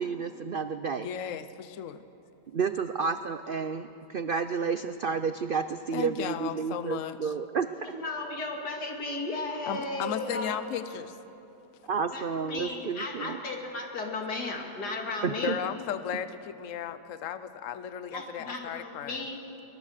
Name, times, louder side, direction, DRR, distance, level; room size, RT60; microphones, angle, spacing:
voice 1, 0.0-1.1 2.5-8.0 11.9-13.4 15.2-15.5, right 5 dB, 75° right, 10 dB, 0.5 m, -31 dB
voice 2, 0.9-2.0 5.9-7.3 9.7-11.2 15.4-19.2, left 9 dB, 60° left, 12 dB, 1.1 m, -35 dB
voice 3, 7.8-10.6 12.1-15.6 18.1-19.4, left 2 dB, 80° left, 1 dB, 3.0 m, -35 dB
23.0 x 21.0 x 6.6 m, 2.9 s
omnidirectional pair, 1.7 m